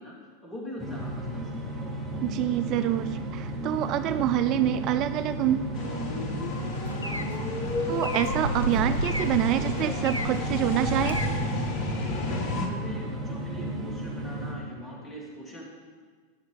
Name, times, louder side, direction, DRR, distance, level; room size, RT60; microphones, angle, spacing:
voice 1, 0.0-1.8 12.5-15.6, left 1 dB, 15° left, -3 dB, 3.1 m, -42 dB
sound 1, 0.8-14.5, right 1 dB, 10° right, 2.4 m, -34 dB
voice 2, 2.2-5.7 7.9-11.2, right 12 dB, 40° right, 10 dB, 0.3 m, -26 dB
sound 2, 5.7-12.7, left 2 dB, 40° left, 1.3 m, -32 dB
sound 3, 6.5-11.5, right 1 dB, 85° left, 0.5 m, -33 dB
16.0 x 6.2 x 5.1 m, 1.5 s
figure-of-eight pair, 90°, 0 cm